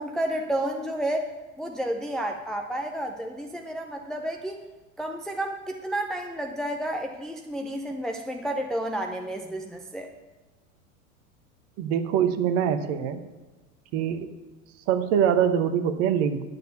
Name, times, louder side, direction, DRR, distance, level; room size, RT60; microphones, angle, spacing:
voice 1, 0.0-4.6 5.0-10.1, right 1 dB, ahead, 2 dB, 0.5 m, -31 dB
voice 2, 11.8-13.2 13.9-14.3 14.9-16.4, right 8 dB, 35° right, 10 dB, 0.9 m, -24 dB
10.5 x 6.8 x 6.8 m, 1.2 s
figure-of-eight pair, 85°, 42 cm